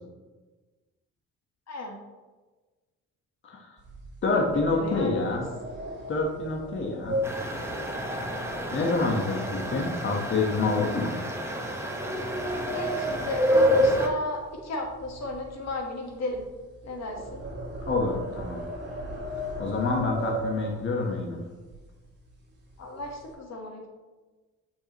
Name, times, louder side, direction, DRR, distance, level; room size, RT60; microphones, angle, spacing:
voice 1, 1.7-2.0 4.3-5.4 12.7-16.4 16.8-17.4 20.6-20.8 22.8-23.9, left 2 dB, 60° left, 2 dB, 1.4 m, -34 dB
voice 2, 3.4-3.8 4.2-5.4 6.1-7.2 8.3-11.1 17.9-18.6 19.6-21.4, left 3 dB, 40° left, -1 dB, 1.2 m, -27 dB
sound 1, 3.8-9.1 9.4-9.8 10.3-10.4 11.2-14.6 14.8-21.1 21.7-21.8 22.1-22.3 22.7-23.3, right 1 dB, 35° right, 2.3 m, -37 dB
sound 2, 7.2-14.1, equal, 10° right, 1.0 m, -28 dB
8.7 x 5.5 x 3.0 m, 1.3 s
cardioid pair, 90°, 30 cm